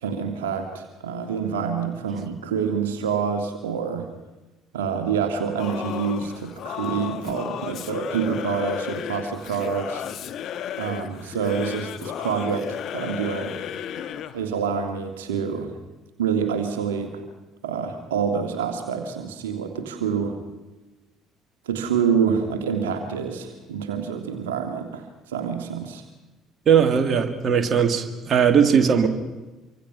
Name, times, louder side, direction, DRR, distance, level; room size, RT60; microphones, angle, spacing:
voice 1, 0.0-4.1 4.7-10.0 10.8-13.6 14.3-15.7 16.2-17.2 17.6-20.5 21.7-26.0, right 6 dB, 75° right, 5 dB, 1.9 m, -27 dB
Singing / Musical instrument, 5.6-14.4, left 9 dB, 50° left, 1.3 m, -33 dB
voice 2, 26.7-29.1, right 7 dB, 40° right, 6 dB, 2.2 m, -19 dB
25.5 x 24.5 x 5.8 m, 1.1 s
figure-of-eight pair, 55°, 0 cm